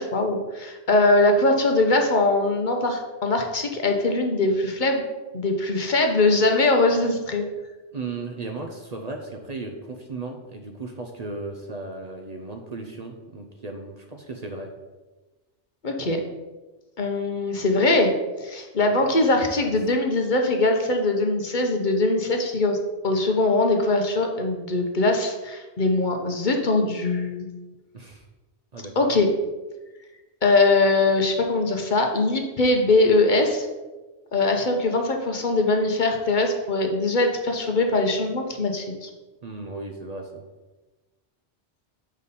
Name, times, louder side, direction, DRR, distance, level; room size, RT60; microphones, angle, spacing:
voice 1, 0.0-5.0 5.3-7.5 15.8-16.2 17.0-18.1 18.4-22.8 23.0-27.5 29.0-29.3 30.4-33.7 34.3-39.1, left 2 dB, 45° left, 3 dB, 0.9 m, -21 dB
voice 2, 7.9-14.7 19.0-19.1 19.6-19.7 27.9-28.3 28.7-29.1 39.4-40.4, right 3 dB, 40° right, 3 dB, 0.7 m, -36 dB
7.1 x 5.2 x 4.1 m, 1.2 s
omnidirectional pair, 1.2 m